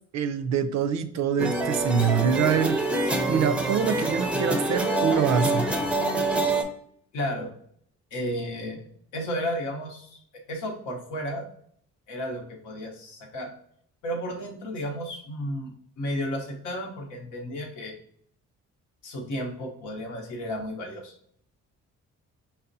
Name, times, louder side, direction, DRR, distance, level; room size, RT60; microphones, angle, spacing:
voice 1, 0.1-2.8 3.3-5.8, right 7 dB, 60° right, 9 dB, 0.4 m, -25 dB
sound 1, 1.4-6.6, right 2 dB, 5° right, 0.5 m, -26 dB
voice 2, 7.1-7.5 8.1-8.9 9.1-10.2 10.5-11.5 12.1-13.5 14.0-15.7 16.0-17.9 19.0-21.1, equal, 85° left, 1 dB, 0.9 m, -33 dB
5.4 x 2.1 x 2.6 m, 0.65 s
cardioid pair, 90°, 30 cm